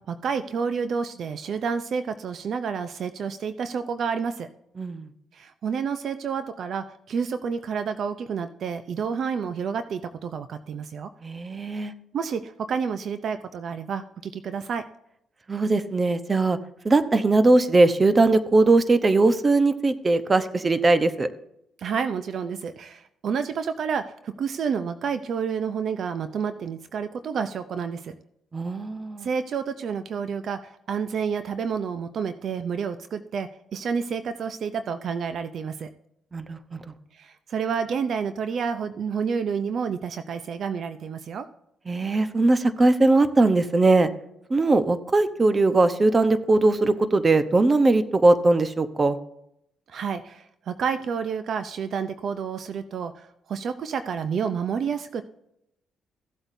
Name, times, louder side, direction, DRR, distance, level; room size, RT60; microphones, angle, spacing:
voice 1, 0.1-4.5 5.3-11.1 12.1-14.8 21.8-28.2 29.2-35.9 37.1-41.5 49.9-55.2, right 6 dB, 60° right, 10 dB, 0.6 m, -29 dB
voice 2, 4.8-5.1 11.2-11.9 15.5-16.6 16.8-21.3 28.5-29.3 36.3-36.8 41.9-44.1 44.5-49.2, right 2 dB, 30° right, 12 dB, 0.9 m, -20 dB
16.0 x 8.0 x 2.7 m, 0.78 s
cardioid pair, 90°, 0 cm